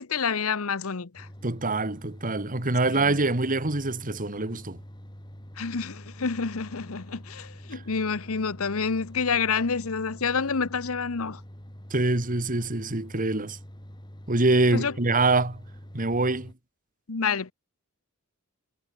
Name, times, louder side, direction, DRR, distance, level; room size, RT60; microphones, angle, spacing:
voice 1, 0.0-1.3 2.9-3.2 5.6-11.4 14.7-14.9 17.1-17.5, left 5 dB, 75° left, 1.0 m, -28 dB
sound 1, 1.2-16.5, equal, 20° left, 3.9 m, -45 dB
voice 2, 1.4-4.8 7.7-7.8 11.9-13.6 14.3-15.6 15.9-16.5, right 2 dB, 40° right, 2.2 m, -25 dB
head